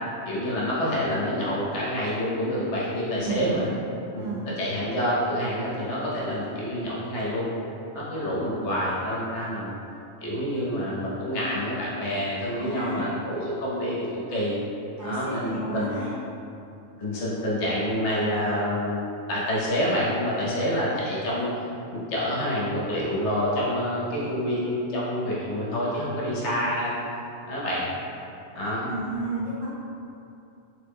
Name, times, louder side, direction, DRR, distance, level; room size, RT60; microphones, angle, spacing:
voice 1, 0.3-3.7 4.1-4.2 4.6-7.5 7.9-9.8 10.2-14.6 15.0-16.0 17.0-21.5 21.9-27.0 27.5-27.9 28.5-28.9, equal, 65° left, -7 dB, 1.0 m, -27 dB
voice 2, 3.2-3.5 4.2-4.5 12.5-13.0 15.0-16.1 28.8-29.7, right 2 dB, 45° right, -11 dB, 0.8 m, -32 dB
3.2 x 2.1 x 3.4 m, 2.7 s
omnidirectional pair, 1.3 m